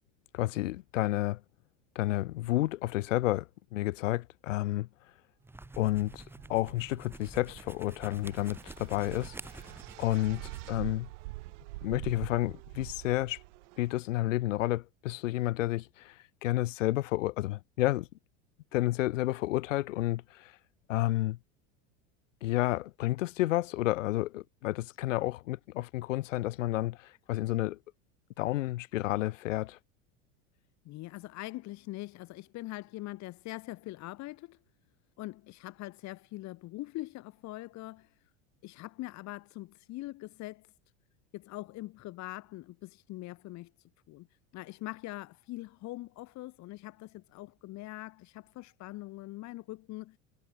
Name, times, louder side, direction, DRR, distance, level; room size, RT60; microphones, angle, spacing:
voice 1, 0.3-1.4 1.9-3.5 3.7-4.9 5.8-6.2 6.5-9.3 10.0-11.1 11.8-13.4 13.8-16.1 16.4-18.1 18.7-20.5 20.9-21.4 22.4-27.8 28.4-29.8, left 16 dB, 80° left, 1.0 m, -30 dB
sound 1, 5.4-10.8, right 2 dB, 5° right, 0.9 m, -48 dB
sound 2, 5.6-14.0, right 21 dB, 75° right, 2.8 m, -45 dB
voice 2, 30.8-34.6 35.2-38.1 38.6-40.7 41.3-43.7 44.1-44.3 44.5-50.2, left 18 dB, 45° left, 1.2 m, -42 dB
hypercardioid pair, 95°, 37 cm